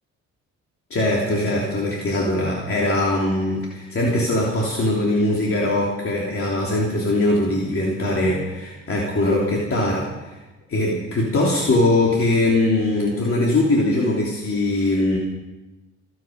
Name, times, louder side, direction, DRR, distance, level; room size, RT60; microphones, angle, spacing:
voice 1, 0.9-10.3 10.7-15.2, left 1 dB, 45° left, -3 dB, 3.3 m, -21 dB
28.5 x 9.5 x 5.3 m, 1.1 s
cardioid pair, 90°, 30 cm